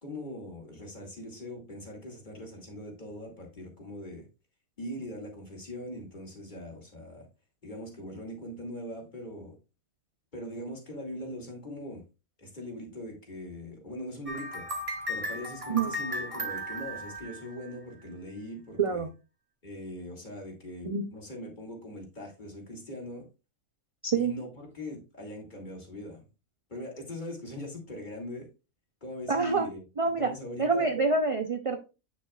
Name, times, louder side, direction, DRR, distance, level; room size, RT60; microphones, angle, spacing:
voice 1, 0.0-4.3 4.8-7.3 7.6-9.5 10.3-12.0 12.4-14.7 15.1-19.1 19.6-23.3 24.2-26.3 26.7-28.5 29.0-29.8 30.2-30.9, left 1 dB, 35° left, 0 dB, 2.3 m, -41 dB
sound 1, 14.3-18.0, equal, 25° right, 1.2 m, -36 dB
voice 2, 29.3-29.7 30.0-30.3 30.6-31.8, right 4 dB, 40° right, 6 dB, 0.4 m, -26 dB
8.1 x 6.5 x 2.3 m, 0.29 s
omnidirectional pair, 1.4 m